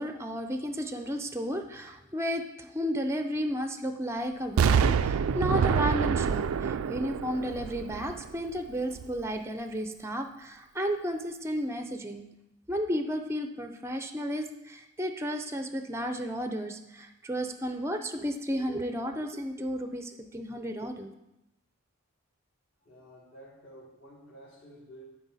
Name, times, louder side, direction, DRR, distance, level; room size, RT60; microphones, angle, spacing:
voice 1, 0.0-12.3 12.7-21.1, equal, 10° right, 6 dB, 0.5 m, -33 dB
Explosion, 4.6-8.5 9.0-9.1, right 7 dB, 70° right, 0.3 m, -26 dB
voice 2, 22.8-25.0, right 1 dB, 55° left, -11 dB, 3.2 m, -51 dB
12.0 x 5.0 x 4.1 m, 0.91 s
head